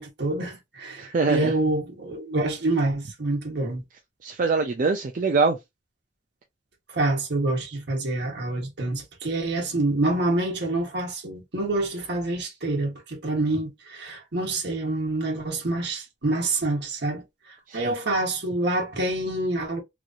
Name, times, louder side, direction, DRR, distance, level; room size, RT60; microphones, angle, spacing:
voice 1, 0.0-3.8 6.9-17.2 17.7-19.8, right 2 dB, 65° right, 1.1 m, -27 dB
voice 2, 1.0-1.5 4.2-5.6 17.7-17.9, right 4 dB, 45° right, 0.4 m, -23 dB
3.0 x 2.6 x 2.4 m
head